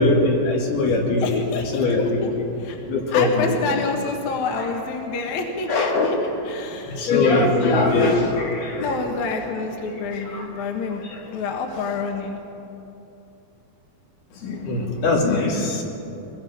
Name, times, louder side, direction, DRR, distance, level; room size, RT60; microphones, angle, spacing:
voice 1, 0.0-1.4 1.7-2.4 2.9-3.6 4.6-4.7 5.7-6.2 6.9-9.0 10.1-10.5 11.0-11.2 14.3-15.8, left 3 dB, 80° left, -2 dB, 4.5 m, -21 dB
voice 2, 1.2-2.3 2.6-2.8 3.1-6.2 6.5-7.1 7.4-8.0 8.8-11.0 11.3-12.4, left 4 dB, 60° left, 2 dB, 2.6 m, -28 dB
22.5 x 21.0 x 5.9 m, 2.9 s
omnidirectional pair, 4.3 m